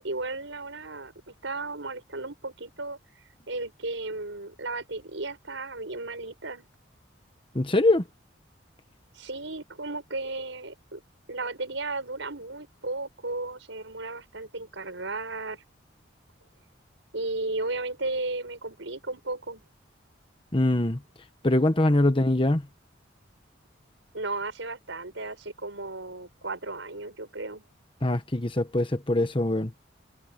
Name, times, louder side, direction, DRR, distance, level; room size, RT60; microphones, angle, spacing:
voice 1, 0.0-3.0 3.5-6.7 9.1-11.0 11.3-15.6 17.1-19.6 24.1-27.6, right 2 dB, 85° right, 5.6 m, -34 dB
voice 2, 7.5-8.0 20.5-21.0 21.4-22.6 28.0-29.7, left 1 dB, 25° left, 1.2 m, -23 dB
head